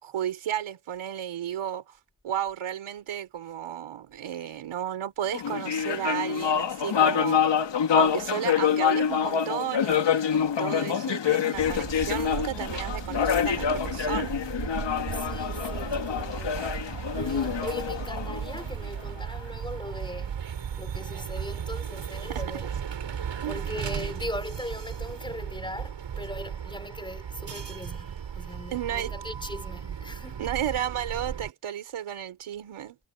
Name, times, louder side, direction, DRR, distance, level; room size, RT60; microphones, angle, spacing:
voice 1, 0.0-1.9 2.2-7.4 7.9-14.3 22.3-22.4 23.4-23.6 28.7-29.1 30.4-33.0, right 10 dB, 80° right, 4.8 m, -33 dB
sound 1, 5.3-19.0, left 8 dB, 60° left, 2.4 m, -26 dB
sound 2, 11.5-31.5, right 8 dB, 65° right, 7.0 m, -36 dB
voice 2, 15.1-30.5, left 1 dB, 10° left, 4.2 m, -40 dB
cardioid pair, 100°, 48 cm